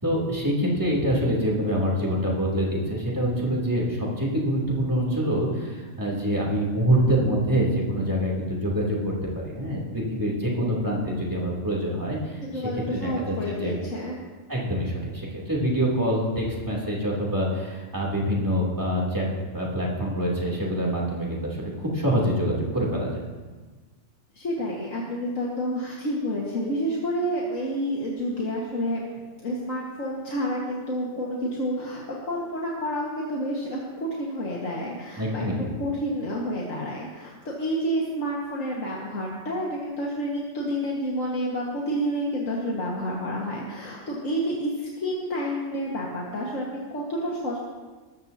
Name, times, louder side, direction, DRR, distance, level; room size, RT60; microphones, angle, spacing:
voice 1, 0.0-12.7 13.0-13.7 14.5-19.3 19.5-23.2 35.2-35.7, equal, 15° right, -5 dB, 3.1 m, -25 dB
voice 2, 12.4-14.2 24.3-29.0 29.4-35.5 35.8-47.6, equal, 80° left, -4 dB, 2.1 m, -29 dB
20.5 x 14.0 x 2.8 m, 1.3 s
omnidirectional pair, 1.3 m